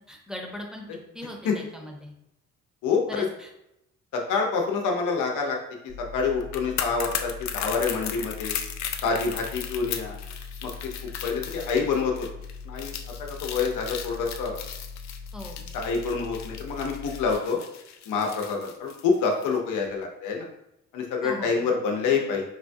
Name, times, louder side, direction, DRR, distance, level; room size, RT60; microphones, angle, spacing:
voice 1, 0.1-0.8 1.1-2.1 3.1-3.5 15.3-15.6 21.2-21.6, left 1 dB, ahead, 0 dB, 0.8 m, -38 dB
voice 2, 2.8-3.3 4.1-5.6 6.0-8.5 9.0-10.2 10.6-10.7 11.2-12.3 12.6-12.9 13.2-14.5 15.7-17.6 18.1-20.4 20.9-22.4, left 5 dB, 85° left, 1 dB, 0.8 m, -27 dB
sound 1, 5.9-17.4, left 5 dB, 40° right, 0.6 m, -41 dB
sound 2, 6.4-19.6 19.8-20.0, left 8 dB, 65° left, 0.5 m, -36 dB
4.8 x 2.3 x 2.6 m, 0.83 s
cardioid pair, 90°, 30 cm